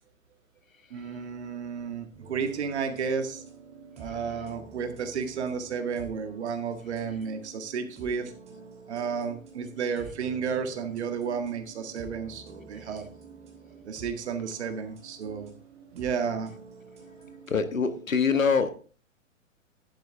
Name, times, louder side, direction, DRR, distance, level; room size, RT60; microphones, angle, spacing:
voice 1, 0.9-3.4 4.0-8.3 8.9-13.1 13.9-15.5 15.9-16.5, right 6 dB, 55° right, 1.9 m, -32 dB
sound 1, 2.1-17.6, right 3 dB, 15° right, 2.8 m, -49 dB
voice 2, 17.5-18.7, left 5 dB, 80° left, 1.4 m, -24 dB
11.0 x 9.4 x 3.5 m
figure-of-eight pair, 115°, 40 cm